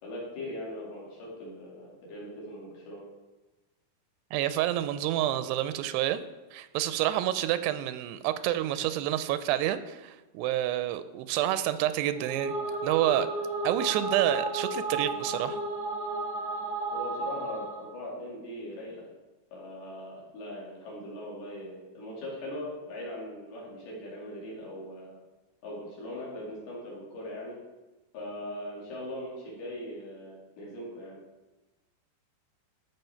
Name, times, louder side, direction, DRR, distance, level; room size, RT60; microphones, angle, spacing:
voice 1, 0.0-3.0 16.9-19.1 19.5-25.2 25.6-27.6 28.1-31.2, left 1 dB, 70° left, -5 dB, 4.5 m, -40 dB
voice 2, 4.3-6.2 6.5-12.5 12.8-13.3 13.6-15.6, right 13 dB, 90° right, 12 dB, 2.7 m, -28 dB
sound 1, 12.1-17.9, right 2 dB, 70° right, 1.4 m, -33 dB
13.5 x 5.6 x 4.5 m, 1.1 s
omnidirectional pair, 4.7 m